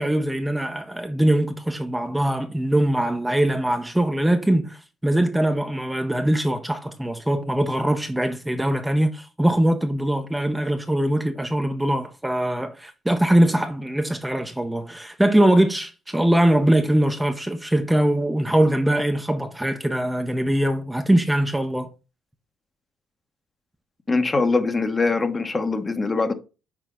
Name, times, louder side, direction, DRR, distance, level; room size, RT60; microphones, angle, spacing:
voice 1, 0.0-21.9, right 1 dB, 5° right, 0.7 m, -22 dB
voice 2, 24.1-26.3, left 3 dB, 25° left, 1.0 m, -22 dB
6.1 x 4.4 x 3.7 m
supercardioid pair, 80°, 0 cm